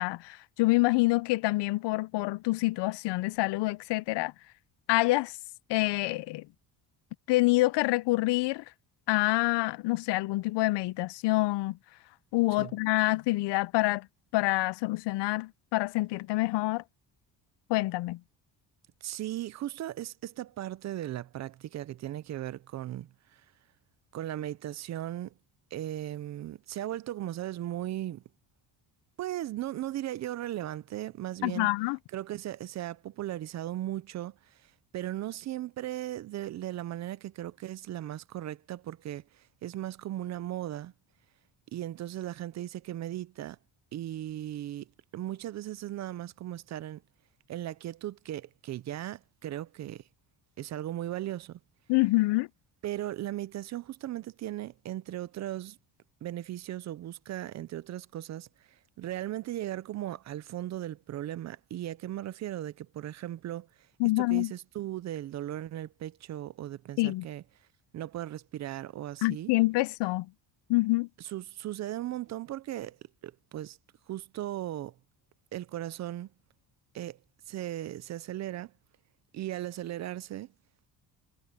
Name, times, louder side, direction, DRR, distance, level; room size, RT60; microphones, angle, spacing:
voice 1, 0.0-4.3 4.9-5.3 5.7-6.4 7.3-8.6 9.1-11.8 12.3-14.1 14.3-16.8 17.7-18.2 31.4-32.0 51.9-52.5 64.0-64.5 67.0-67.2 69.2-70.3 70.7-71.1, left 21 dB, 80° left, 0.6 m, -26 dB
voice 2, 19.0-23.4 24.1-25.3 25.7-28.2 29.2-31.7 32.1-40.9 41.7-43.6 43.9-44.9 45.1-47.0 47.5-50.0 50.6-51.6 52.8-55.8 56.2-63.7 64.2-67.4 67.9-69.5 71.2-73.0 73.2-73.8 74.1-74.9 75.5-76.3 76.9-77.2 77.5-78.7 79.3-80.5, right 13 dB, 45° right, 0.5 m, -37 dB
cardioid pair, 175°, 41 cm